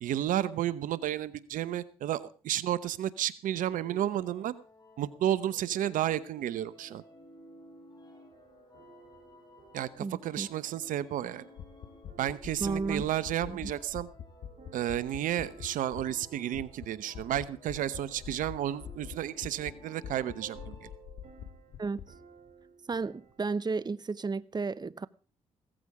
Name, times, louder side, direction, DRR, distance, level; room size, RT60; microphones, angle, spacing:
voice 1, 0.0-4.5 5.0-7.0 9.7-11.5 12.2-14.1 14.7-20.9, right 12 dB, 80° right, 0.9 m, -32 dB
sound 1, 3.5-21.2, left 1 dB, 30° left, 6.7 m, -56 dB
sound 2, 8.3-23.5, right 5 dB, 60° right, 3.4 m, -58 dB
voice 2, 10.0-10.5 12.6-13.1 13.5-13.7 21.8-22.0 22.9-25.1, right 4 dB, 30° right, 0.8 m, -33 dB
sound 3, 11.6-16.3 16.5-16.9 17.1-19.7 20.0-22.1, left 9 dB, 80° left, 1.3 m, -43 dB
16.5 x 14.0 x 4.9 m
supercardioid pair, 50°, 14 cm